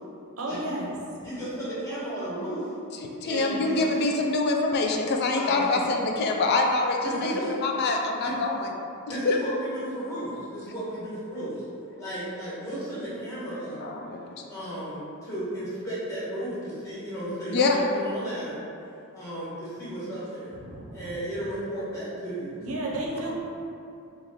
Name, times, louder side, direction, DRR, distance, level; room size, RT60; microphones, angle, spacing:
voice 1, 0.4-0.9 20.6-21.2 22.6-23.3, right 1 dB, 70° right, -2 dB, 0.6 m, -33 dB
voice 2, 1.2-2.7 3.2-3.9 5.4-5.9 7.0-7.6 8.2-8.3 9.0-11.6 12.0-13.8 14.5-18.6 19.1-20.5 20.9-22.6 23.1-23.3, right 1 dB, 15° left, -11 dB, 1.2 m, -34 dB
voice 3, 3.0-7.3 7.6-8.7 9.1-9.4 13.8-14.3 17.5-17.8, left 3 dB, 50° left, 2 dB, 0.3 m, -25 dB
3.0 x 2.5 x 4.0 m, 2.6 s
head